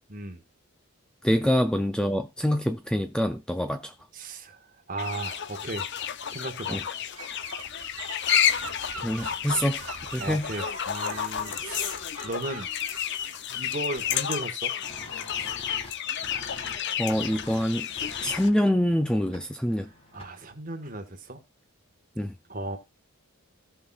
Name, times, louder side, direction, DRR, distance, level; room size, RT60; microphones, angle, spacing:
voice 1, 0.1-0.4 4.1-5.9 6.3-7.0 10.2-12.7 13.5-14.7 20.1-21.4 22.5-22.8, right 2 dB, 40° right, 1.5 m, -36 dB
voice 2, 1.2-3.9 6.7-6.8 9.0-9.8 10.1-10.5 17.0-17.9 18.2-19.9 22.2-22.3, equal, 5° left, 0.4 m, -25 dB
sound 1, 5.0-18.5, left 9 dB, 50° left, 0.6 m, -31 dB
Gull seagull / Wind, 7.1-14.4, right 5 dB, 65° right, 1.4 m, -43 dB
sound 2, 14.8-20.5, left 1 dB, 25° left, 2.0 m, -46 dB
16.5 x 5.7 x 2.4 m
head